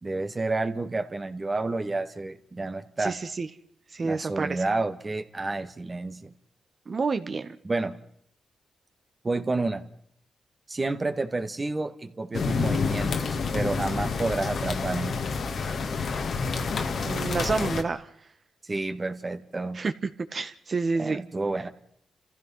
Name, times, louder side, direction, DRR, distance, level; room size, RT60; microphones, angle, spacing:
voice 1, 0.0-3.2 4.0-6.3 7.6-8.0 9.2-9.9 10.7-15.2 18.6-19.8 21.0-21.7, right 2 dB, 35° right, 8 dB, 1.9 m, -30 dB
voice 2, 3.0-3.5 3.9-4.6 6.9-7.5 17.0-18.1 19.7-19.9 20.2-21.2, right 4 dB, 50° right, 10 dB, 1.6 m, -29 dB
sound 1, 12.3-17.8, left 4 dB, 65° left, 2.0 m, -28 dB
29.5 x 15.0 x 5.8 m, 0.67 s
supercardioid pair, 50°, 0 cm